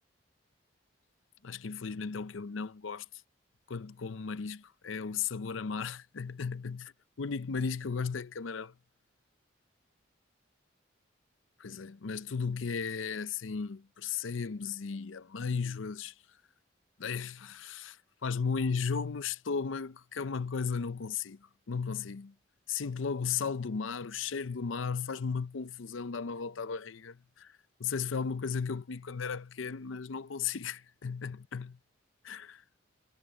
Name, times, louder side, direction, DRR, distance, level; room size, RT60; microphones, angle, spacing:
voice 1, 1.4-3.1 3.7-6.9 7.2-8.7 11.6-16.1 17.0-22.3 22.7-27.5 27.8-31.8 32.2-32.6, left 5 dB, 90° left, 0.6 m, -35 dB
head